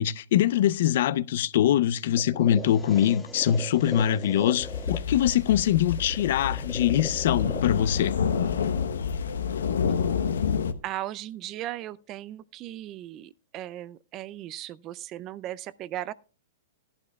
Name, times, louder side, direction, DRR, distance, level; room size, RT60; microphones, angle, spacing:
voice 1, 0.0-8.1, left 11 dB, 65° left, 0.6 m, -23 dB
sound 1, 2.1-10.1, left 2 dB, 5° left, 1.4 m, -41 dB
sound 2, 4.6-10.7, left 6 dB, 90° left, 0.9 m, -28 dB
voice 2, 10.8-16.1, right 13 dB, 30° right, 0.4 m, -37 dB
15.5 x 11.5 x 2.3 m
hypercardioid pair, 140°, 0 cm